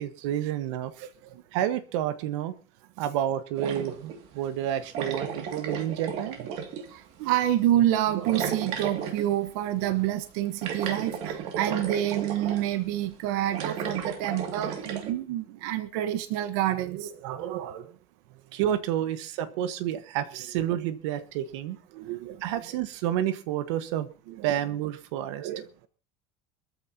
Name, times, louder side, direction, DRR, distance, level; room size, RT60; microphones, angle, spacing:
voice 1, 0.0-0.9 1.5-2.5 3.0-6.4 18.5-21.8 22.4-24.1 24.4-25.5, right 11 dB, 80° right, 1.5 m, -29 dB
voice 2, 1.0-1.4 6.5-6.6 6.9-17.9 21.9-22.4 24.3-24.5 25.4-25.9, right 13 dB, 60° right, 1.3 m, -28 dB
sound 1, 3.6-4.2 4.9-6.9 8.3-9.3 10.6-12.6 13.5-15.1, right 7 dB, 45° right, 2.5 m, -33 dB
23.5 x 14.0 x 2.9 m
cardioid pair, 175°, 15 cm